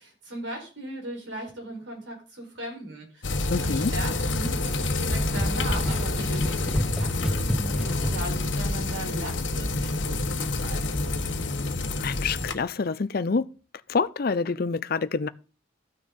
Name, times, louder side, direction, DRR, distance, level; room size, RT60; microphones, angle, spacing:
voice 1, 0.0-11.4, right 1 dB, 70° right, 5.0 m, -38 dB
sound 1, 3.2-12.5, left 2 dB, 75° left, 1.4 m, -28 dB
voice 2, 3.5-3.9 12.0-13.5 13.9-15.3, left 4 dB, 50° left, 0.5 m, -26 dB
sound 2, 4.6-8.4, equal, 5° right, 0.8 m, -30 dB
14.0 x 6.4 x 5.3 m
head